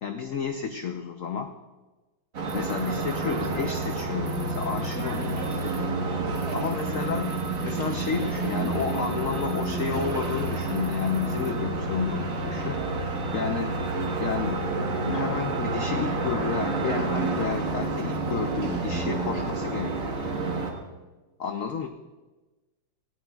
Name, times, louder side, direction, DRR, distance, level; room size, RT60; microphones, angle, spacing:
voice 1, 0.0-1.5 2.5-5.4 5.8-6.1 6.5-7.4 7.6-12.8 13.3-13.8 14.1-20.3 21.4-21.9, left 6 dB, 80° left, 6 dB, 0.7 m, -31 dB
sound 1, 2.3-20.7, right 3 dB, 45° right, 1.6 m, -29 dB
voice 2, 4.9-7.0, equal, 85° right, -2 dB, 4.0 m, -41 dB
18.5 x 15.5 x 2.3 m, 1.2 s
omnidirectional pair, 2.2 m